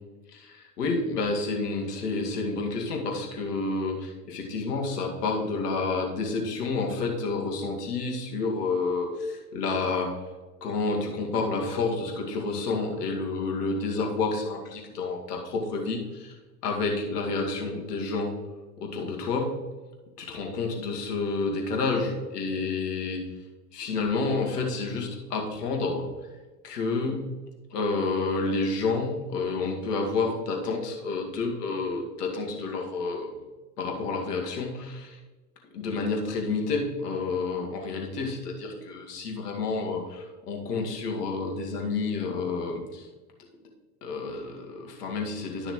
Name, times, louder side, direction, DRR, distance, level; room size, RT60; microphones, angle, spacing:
voice 1, 0.3-10.1 10.6-16.4 16.6-18.3 18.8-19.5 20.2-23.2 23.7-26.1 26.6-27.2 27.7-33.3 33.8-35.2 35.7-43.1 44.0-45.7, left 3 dB, 80° left, 0 dB, 2.2 m, -29 dB
12.5 x 6.3 x 3.1 m, 1.3 s
hypercardioid pair, 85°, 46 cm